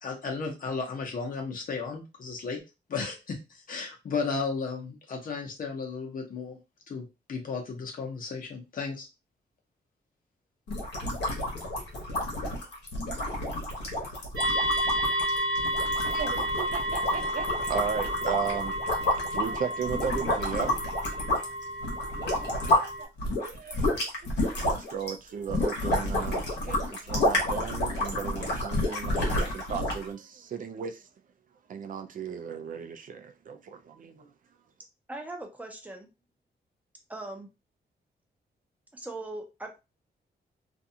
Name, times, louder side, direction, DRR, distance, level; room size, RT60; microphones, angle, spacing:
voice 1, 0.0-2.6 2.9-6.6 6.9-9.1, left 4 dB, 55° left, 0.9 m, -34 dB
sound 1, 10.7-22.9 23.2-30.1, left 1 dB, 80° left, 1.0 m, -30 dB
sound 2, 14.4-23.0, equal, 75° right, 0.8 m, -31 dB
voice 2, 16.0-18.8 19.3-20.7 22.2-22.4 22.7-23.1 23.4-23.9 24.5-31.0 31.7-34.3, right 7 dB, 50° right, 0.4 m, -35 dB
voice 3, 35.1-36.1 37.1-37.5 38.9-39.8, right 2 dB, 10° right, 0.6 m, -39 dB
2.5 x 2.3 x 2.7 m
wide cardioid pair, 135°, 17 cm